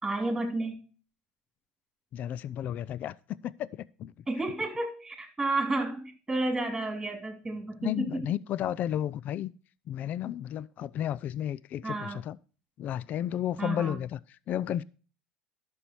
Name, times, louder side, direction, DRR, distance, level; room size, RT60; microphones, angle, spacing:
voice 1, 0.0-0.8 4.3-8.2 11.8-12.2 13.6-14.0, right 2 dB, 10° right, 3.2 m, -31 dB
voice 2, 2.1-4.1 7.8-9.5 9.9-12.4 12.8-14.2 14.5-14.8, left 11 dB, 50° left, 0.4 m, -33 dB
11.5 x 7.0 x 4.5 m
supercardioid pair, 100°, 4 cm